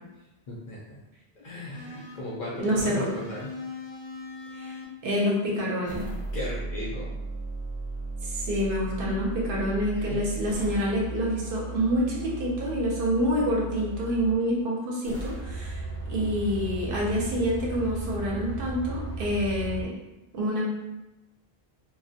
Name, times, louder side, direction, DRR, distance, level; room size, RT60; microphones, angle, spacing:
voice 1, 0.5-1.0 1.4-3.5 6.3-7.2 10.1-10.2, left 1 dB, 50° left, -6 dB, 0.7 m, -36 dB
sound 1, 1.7-2.3 2.8-4.9 5.9-14.4 15.0-19.9, right 2 dB, 30° right, 0.8 m, -36 dB
voice 2, 2.6-3.1 4.6-4.8 5.0-6.0 8.2-15.8 16.1-19.9 20.3-20.6, equal, 65° right, -3 dB, 0.8 m, -27 dB
2.2 x 2.1 x 2.7 m, 0.98 s
omnidirectional pair, 1.0 m